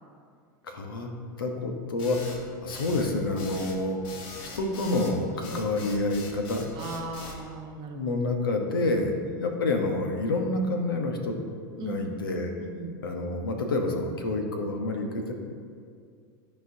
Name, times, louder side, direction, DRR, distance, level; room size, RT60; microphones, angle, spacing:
voice 1, 0.6-1.1 1.4-4.0 4.5-6.6 7.9-9.1 9.4-11.3 11.8-12.5 13.0-15.3, left 2 dB, 85° left, 4 dB, 0.9 m, -28 dB
sound 1, 2.0-7.4, left 3 dB, 50° left, 1.1 m, -42 dB
voice 2, 6.8-8.0 8.9-9.5 11.8-12.2 12.6-13.0, right 3 dB, 45° right, 3 dB, 1.0 m, -38 dB
12.0 x 4.4 x 2.7 m, 2.2 s
hypercardioid pair, 95°, 11 cm